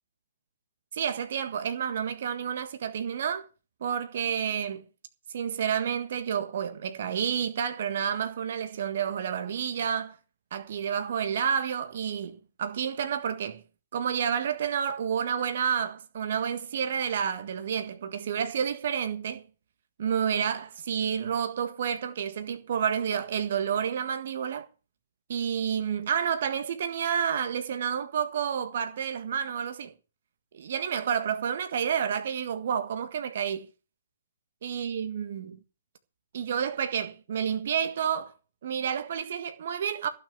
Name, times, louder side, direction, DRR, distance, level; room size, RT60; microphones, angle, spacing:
voice 1, 0.9-3.5 3.8-4.8 5.3-10.2 10.5-13.6 13.9-19.5 20.0-24.7 25.3-29.9 30.5-33.7 34.6-35.6 36.3-38.3 38.6-40.1, right 8 dB, 50° right, 1.7 m, -30 dB
15.5 x 6.3 x 7.9 m
figure-of-eight pair, 125°, 0 cm